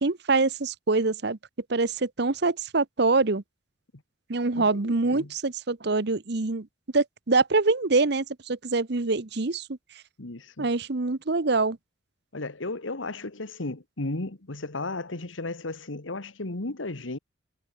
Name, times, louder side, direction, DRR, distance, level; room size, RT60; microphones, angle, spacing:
voice 1, 0.0-1.4 1.7-3.4 4.3-6.7 6.9-9.7 10.6-11.8, right 3 dB, 60° right, 1.0 m, -25 dB
voice 2, 4.5-5.3 10.2-10.7 12.3-17.2, left 2 dB, 90° left, 1.8 m, -34 dB
head